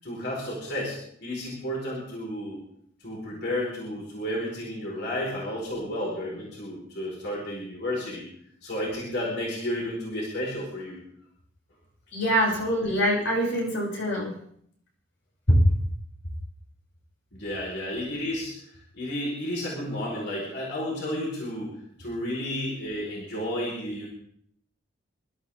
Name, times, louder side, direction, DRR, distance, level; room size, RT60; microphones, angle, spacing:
voice 1, 0.0-2.6 3.0-8.2 8.6-11.0 17.3-18.5 18.9-21.7 22.0-24.1, left 1 dB, 55° left, -4 dB, 5.2 m, -32 dB
voice 2, 12.1-14.3 15.5-15.7, equal, 85° left, -4 dB, 7.4 m, -23 dB
26.5 x 13.0 x 3.8 m, 0.65 s
head